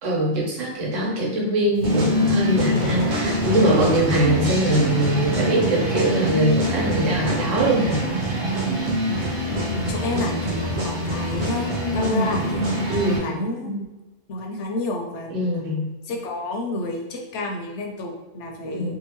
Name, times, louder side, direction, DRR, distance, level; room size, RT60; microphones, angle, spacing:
voice 1, 0.0-8.1 8.3-8.5 12.9-13.3 15.3-15.9 18.7-18.9, right 1 dB, 85° right, -4 dB, 1.2 m, -22 dB
sound 1, 1.8-13.2, right 1 dB, 50° right, 0.7 m, -24 dB
voice 2, 9.7-12.6 13.0-13.9 14.3-15.4 16.0-18.9, left 1 dB, 75° left, 2 dB, 0.8 m, -30 dB
2.7 x 2.4 x 2.9 m, 1.1 s
omnidirectional pair, 1.3 m